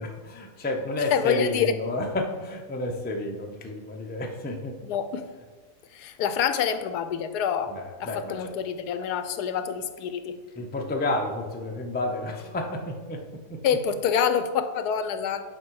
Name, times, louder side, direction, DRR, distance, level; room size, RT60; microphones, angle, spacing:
voice 1, 0.0-4.8 7.7-8.5 10.6-13.2 13.5-13.6, left 2 dB, 15° left, 1 dB, 0.3 m, -31 dB
voice 2, 1.1-1.7 4.8-5.2 5.9-7.7 8.0-10.4 13.6-15.4, left 7 dB, 80° left, 10 dB, 1.1 m, -26 dB
8.8 x 5.3 x 4.7 m, 1.4 s
omnidirectional pair, 1.7 m